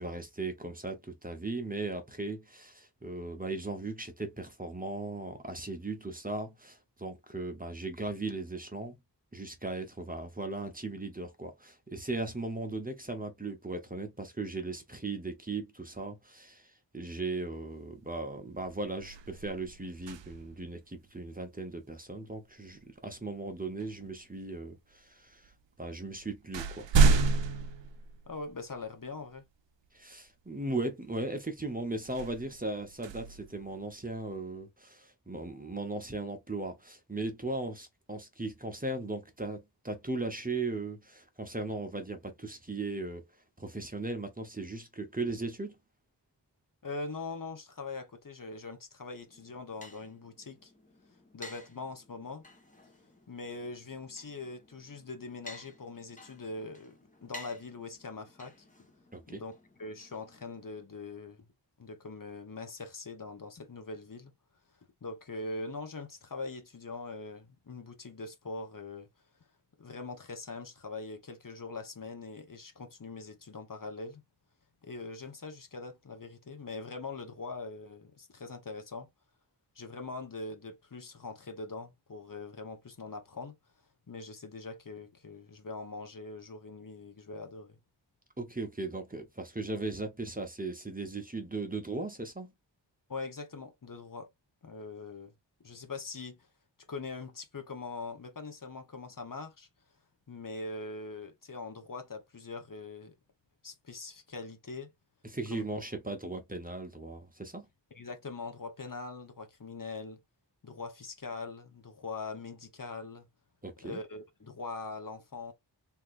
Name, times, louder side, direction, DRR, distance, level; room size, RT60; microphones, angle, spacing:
voice 1, 0.0-9.0 9.3-25.5 25.8-26.9 29.9-43.2 43.6-45.8 59.1-59.4 88.4-92.5 105.2-107.7 113.6-114.0, right 2 dB, 20° right, 0.9 m, -37 dB
sound 1, 18.0-18.2 18.6-20.7 22.8-23.0 23.8-24.6 25.4-25.5 25.9-28.8 29.3-29.4 32.0-34.2, right 4 dB, 80° right, 0.6 m, -30 dB
voice 2, 28.3-29.5 46.8-50.7 51.3-52.4 53.3-58.5 59.3-59.5 59.8-61.4 61.8-64.3 65.0-69.1 69.8-74.2 74.8-79.1 79.8-83.5 84.1-87.8 93.1-94.3 94.6-95.3 95.6-96.4 96.9-99.7 100.3-103.1 103.6-104.9 105.5-105.6 107.9-110.2 110.6-113.3 113.8-115.5, left 3 dB, 45° left, 1.0 m, -42 dB
sound 2, 49.2-60.8, left 1 dB, 15° left, 1.3 m, -54 dB
3.5 x 3.0 x 2.5 m
wide cardioid pair, 80°, 44 cm